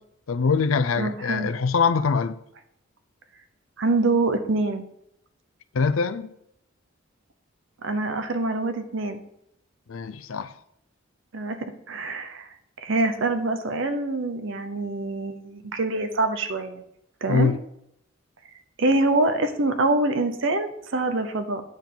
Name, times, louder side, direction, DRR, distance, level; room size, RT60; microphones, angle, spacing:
voice 1, 0.3-2.4 5.7-6.3 9.9-10.5 17.3-17.6, left 5 dB, 75° left, 0.5 m, -23 dB
voice 2, 1.0-1.5 3.8-4.8 7.8-9.2 11.3-12.5 12.8-16.8 17.2-17.5 18.8-21.6, right 2 dB, 65° right, 0.8 m, -25 dB
8.9 x 3.9 x 7.1 m
head